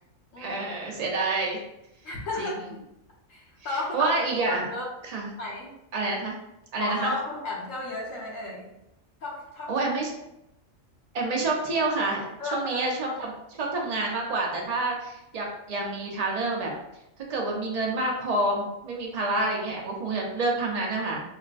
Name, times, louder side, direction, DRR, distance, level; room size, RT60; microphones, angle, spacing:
voice 1, 0.4-1.6 2.4-2.5 3.9-4.6 5.0-5.3 5.9-6.3 6.7-7.1 9.7-10.1 11.1-12.3 12.5-16.7 17.3-21.2, right 2 dB, 40° right, -1 dB, 0.6 m, -28 dB
voice 2, 2.0-2.8 3.3-4.1 4.4-4.9 5.4-5.7 6.8-8.7 9.2-9.7 12.4-12.9, left 2 dB, 75° left, -3 dB, 1.4 m, -33 dB
5.3 x 2.1 x 2.5 m, 0.86 s
omnidirectional pair, 1.4 m